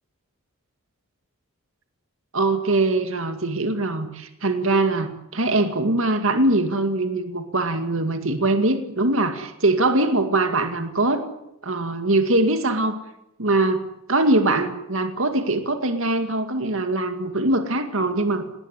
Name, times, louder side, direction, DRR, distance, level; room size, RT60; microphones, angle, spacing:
voice 1, 2.3-11.2 11.6-13.0 13.4-18.5, right 2 dB, 65° right, 7 dB, 2.3 m, -22 dB
19.5 x 19.0 x 10.0 m, 0.85 s
head